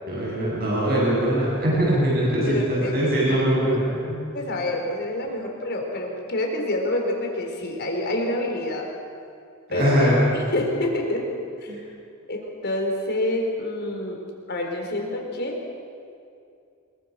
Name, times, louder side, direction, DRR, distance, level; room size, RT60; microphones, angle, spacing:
voice 1, 0.1-4.3 9.7-10.3 11.7-11.8, right 1 dB, 45° right, -5 dB, 7.3 m, -22 dB
voice 2, 2.4-3.8 4.3-8.9 9.7-11.3 11.6-11.7 12.3-14.2 14.5-15.6, left 1 dB, 50° left, 1 dB, 4.3 m, -27 dB
26.0 x 22.5 x 6.0 m, 2.5 s
head